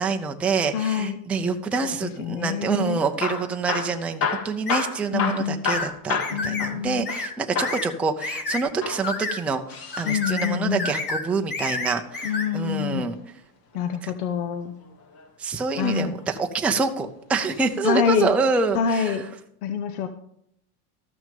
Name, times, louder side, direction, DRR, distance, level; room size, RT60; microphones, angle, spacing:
voice 1, 0.0-13.1 14.0-14.1 15.4-19.2, right 4 dB, 5° right, 4 dB, 0.4 m, -26 dB
voice 2, 0.7-1.2 2.2-3.0 5.1-5.6 6.3-7.1 10.0-10.9 12.2-13.1 13.7-14.7 15.8-16.1 17.8-18.3 18.7-19.2 19.6-20.1, left 7 dB, 85° left, 8 dB, 1.0 m, -26 dB
Hammer / Drill, 3.1-7.3 7.6-7.9 8.7-10.1 11.9-13.1 14.8-15.3 16.0-16.8 17.5-17.7 18.0-18.1 18.8-18.9, left 5 dB, 50° left, 2.2 m, -30 dB
sound 1, 4.7-4.9 5.7-5.9 6.2-6.7 7.1-7.3 7.6-7.9 8.2-8.6 9.0-9.4 9.9-10.5 10.8-11.2 11.5-12.5, left 3 dB, 25° left, 1.4 m, -30 dB
13.5 x 6.2 x 5.2 m, 0.73 s
supercardioid pair, 145°, 44 cm